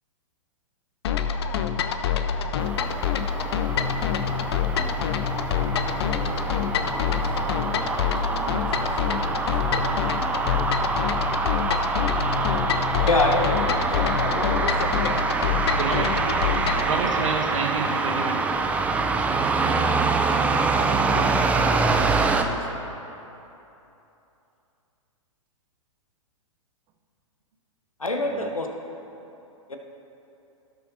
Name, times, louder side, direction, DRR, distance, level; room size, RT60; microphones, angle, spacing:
sound 1, 1.0-16.9, left 7 dB, 50° left, 0.5 m, -26 dB
sound 2, 2.6-22.4, right 4 dB, 10° right, 0.4 m, -26 dB
sound 3, 3.7-14.3, left 7 dB, 30° left, 1.4 m, -37 dB
voice 1, 6.1-10.2 16.6-17.3 20.3-22.8 28.2-28.6, right 5 dB, 25° right, 5 dB, 0.8 m, -39 dB
voice 2, 13.1-15.2 28.0-28.7 29.7-29.8, left 2 dB, 85° left, 4 dB, 1.0 m, -26 dB
voice 3, 15.7-16.4 16.9-18.4 19.2-20.1, right 4 dB, 70° right, 2 dB, 0.9 m, -29 dB
17.0 x 6.6 x 2.7 m, 2.9 s
figure-of-eight pair, 110°, 17 cm